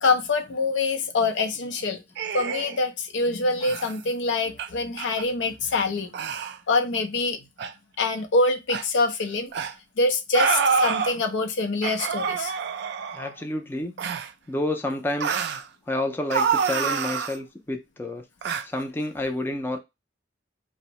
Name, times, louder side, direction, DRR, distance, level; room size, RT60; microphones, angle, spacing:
voice 1, 0.0-2.0 2.3-6.1 6.7-7.4 8.0-9.5 10.0-12.6, left 3 dB, 85° left, 0.5 m, -25 dB
sound 1, 2.2-2.8 3.6-4.0 4.6-4.7 5.0-5.2 6.1-6.6 7.6-7.7 8.7-8.8 9.5-9.7 10.3-11.2 11.8-13.3 14.0-14.3 15.2-15.6 16.3-17.4 18.4-18.6, right 6 dB, 60° right, 0.3 m, -27 dB
voice 2, 13.1-13.9 14.5-15.4 15.9-18.2 18.6-19.8, left 1 dB, 10° left, 0.4 m, -29 dB
2.6 x 2.0 x 2.9 m
head